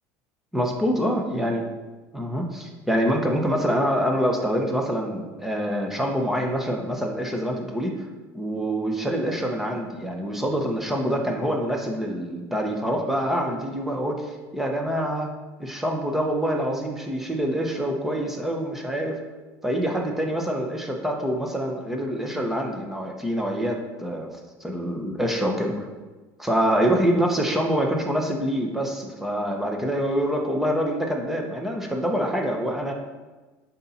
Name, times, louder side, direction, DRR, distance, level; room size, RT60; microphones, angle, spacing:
voice 1, 0.5-1.6 2.1-8.0 8.3-15.3 15.6-19.2 19.6-24.3 24.6-25.7 26.4-32.9, equal, 5° right, 1 dB, 1.0 m, -25 dB
11.0 x 4.1 x 4.3 m, 1.3 s
cardioid pair, 150°, 7 cm